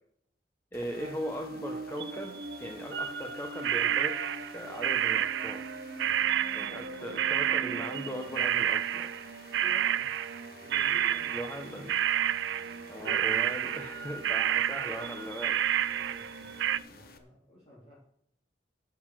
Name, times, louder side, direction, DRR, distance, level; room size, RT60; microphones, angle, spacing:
sound 1, 0.7-17.2, left 3 dB, 55° left, 1.1 m, -53 dB
voice 1, 0.7-4.2 4.5-5.7 6.5-9.1 11.3-12.0 12.9-15.6, equal, 10° left, 2 dB, 1.0 m, -39 dB
sound 2, 0.9-16.8, right 3 dB, 60° right, 1.0 m, -42 dB
sound 3, 3.6-10.5 10.7-12.8 13.1-14.0 14.2-16.8, right 11 dB, 75° right, 0.3 m, -29 dB
voice 2, 9.5-10.1 10.6-11.3 15.8-18.0, equal, 30° left, -7 dB, 3.3 m, -52 dB
10.5 x 7.9 x 6.3 m, 0.68 s
head